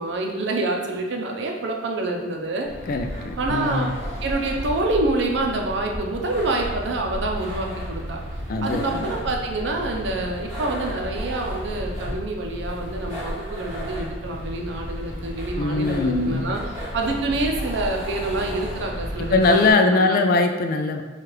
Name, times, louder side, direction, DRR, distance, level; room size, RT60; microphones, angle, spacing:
voice 1, 0.0-2.7 3.4-3.9 4.2-8.2 8.6-16.6 16.9-20.2, right 2 dB, 70° right, 1 dB, 0.6 m, -27 dB
sound 1, 2.6-19.7, equal, 20° right, 1.4 m, -33 dB
voice 2, 2.9-3.9 8.5-9.1 15.6-16.5 19.3-21.0, left 3 dB, 50° left, 5 dB, 0.3 m, -21 dB
4.7 x 2.4 x 3.0 m, 1.2 s
head